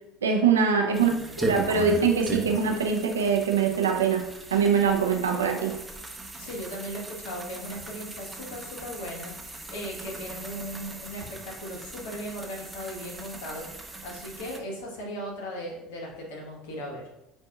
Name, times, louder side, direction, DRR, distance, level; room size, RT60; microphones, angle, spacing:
voice 1, 0.2-1.1 1.5-4.3 4.5-5.7, right 6 dB, 90° right, 2 dB, 0.6 m, -23 dB
voice 2, 0.9-1.3 6.4-13.7 14.0-17.1, equal, 75° left, -1 dB, 1.3 m, -38 dB
sound 1, 0.9-14.6, right 2 dB, 15° right, 0.8 m, -38 dB
7.9 x 2.8 x 2.4 m, 0.89 s
hypercardioid pair, 70°, 0 cm